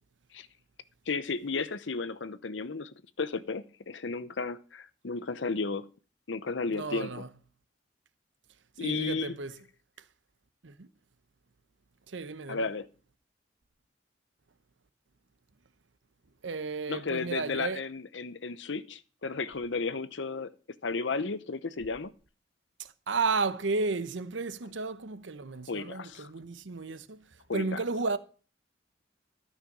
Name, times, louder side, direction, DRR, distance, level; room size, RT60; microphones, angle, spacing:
voice 1, 1.1-5.9 6.3-7.3 8.8-9.4 12.5-12.9 16.9-20.5 20.8-22.1 25.7-26.3 27.5-27.8, left 4 dB, 80° left, 0.8 m, -33 dB
voice 2, 6.7-7.3 8.8-9.5 10.6-10.9 12.1-12.6 16.4-17.8 22.8-27.3 27.5-28.2, right 4 dB, 85° right, 0.9 m, -33 dB
13.0 x 5.7 x 7.2 m
head